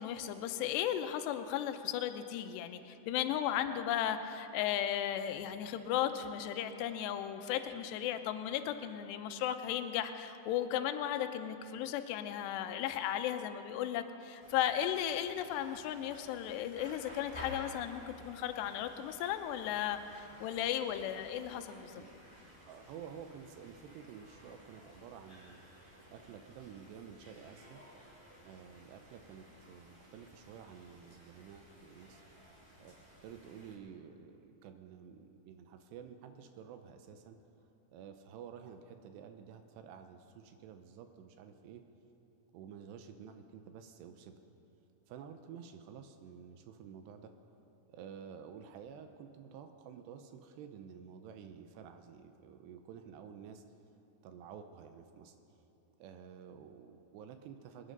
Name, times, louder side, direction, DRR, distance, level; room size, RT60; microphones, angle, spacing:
voice 1, 0.0-22.0, left 10 dB, 80° left, 8 dB, 2.8 m, -35 dB
sound 1, 14.4-33.8, left 1 dB, 5° left, 4.0 m, -55 dB
voice 2, 22.7-27.8 28.4-32.2 32.8-37.4 37.9-41.8 42.5-44.3 45.1-47.3 47.9-53.6 54.2-55.4 56.0-57.9, right 7 dB, 80° right, 7 dB, 2.8 m, -51 dB
25.5 x 9.9 x 5.3 m, 2.8 s
omnidirectional pair, 5.0 m